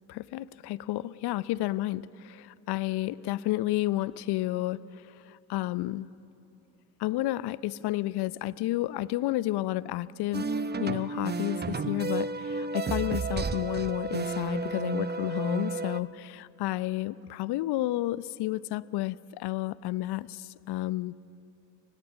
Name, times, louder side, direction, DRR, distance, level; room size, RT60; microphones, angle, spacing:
voice 1, 0.1-6.1 7.0-10.5 10.8-21.2, left 16 dB, 55° left, 19 dB, 0.7 m, -31 dB
sound 1, 10.3-16.0, right 4 dB, 20° right, 0.9 m, -32 dB
29.5 x 19.5 x 7.4 m, 2.9 s
hypercardioid pair, 55°, 47 cm